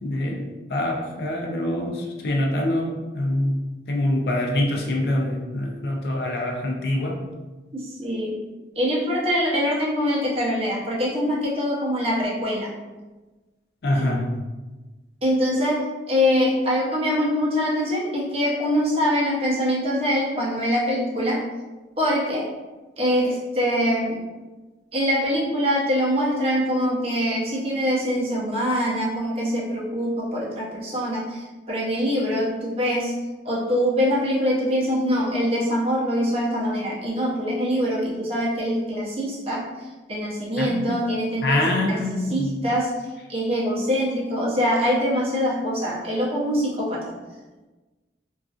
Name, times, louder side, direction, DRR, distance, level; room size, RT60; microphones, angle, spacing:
voice 1, 0.0-3.6 3.9-7.2 13.8-14.3 40.6-40.9 41.4-42.5, left 1 dB, 60° left, 2 dB, 0.4 m, -25 dB
voice 2, 7.7-8.4 8.8-12.7 13.9-14.1 15.2-21.4 22.0-22.5 23.0-24.2 24.9-33.1 33.4-47.2, equal, 30° right, -5 dB, 0.6 m, -24 dB
2.4 x 2.4 x 2.3 m, 1.2 s
head